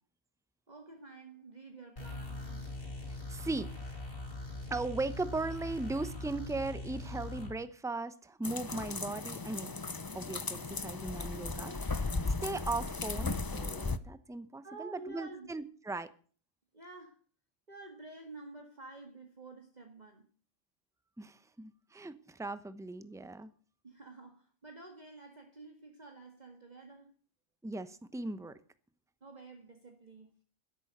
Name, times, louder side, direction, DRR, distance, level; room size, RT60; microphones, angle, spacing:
voice 1, 0.7-2.8 14.6-15.5 16.7-17.2 17.7-20.3 23.8-27.1 29.2-30.3, right 3 dB, 35° right, 1.9 m, -50 dB
sound 1, 2.0-7.5, left 2 dB, 45° left, 3.4 m, -42 dB
voice 2, 3.1-3.7 4.7-9.7 10.1-16.1 21.2-23.5 27.6-28.6, right 3 dB, 5° right, 0.8 m, -38 dB
sound 2, 8.4-14.0, left 3 dB, 25° left, 0.5 m, -36 dB
13.0 x 11.0 x 8.0 m
omnidirectional pair, 1.3 m